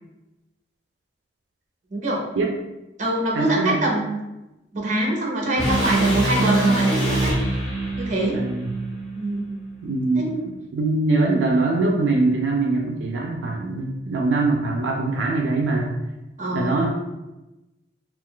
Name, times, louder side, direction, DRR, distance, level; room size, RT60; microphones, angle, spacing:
voice 1, 1.9-2.2 3.0-4.2 4.7-7.4 8.0-8.4 9.1-9.5 10.1-10.4 16.4-16.8, right 1 dB, 40° right, -1 dB, 0.7 m, -24 dB
voice 2, 3.3-3.8 8.3-8.7 9.8-15.9 16.5-16.9, right 3 dB, 80° right, 1 dB, 0.4 m, -23 dB
sound 1, 5.6-9.7, right 2 dB, 30° left, 1.1 m, -23 dB
2.5 x 2.3 x 3.7 m, 1.0 s
head